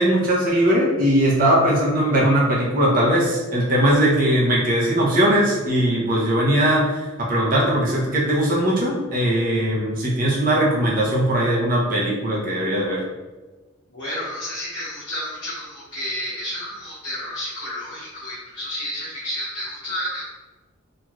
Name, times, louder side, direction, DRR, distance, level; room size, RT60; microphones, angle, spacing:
voice 1, 0.0-13.0, right 1 dB, 40° right, -4 dB, 0.6 m, -20 dB
voice 2, 13.9-20.2, left 1 dB, 55° left, -10 dB, 0.8 m, -31 dB
2.9 x 2.6 x 2.3 m, 1.2 s
head